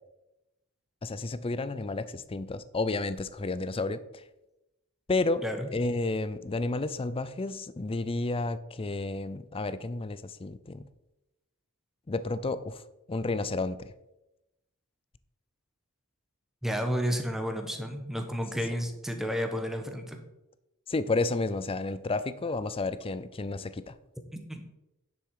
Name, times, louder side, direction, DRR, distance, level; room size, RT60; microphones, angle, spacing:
voice 1, 1.0-4.2 5.1-5.4 5.7-10.8 12.1-12.8 13.1-13.8 20.9-23.9, left 3 dB, 25° left, 14 dB, 0.5 m, -31 dB
voice 2, 16.6-20.2 24.3-24.6, equal, ahead, 5 dB, 1.1 m, -31 dB
9.6 x 7.1 x 4.8 m, 0.94 s
head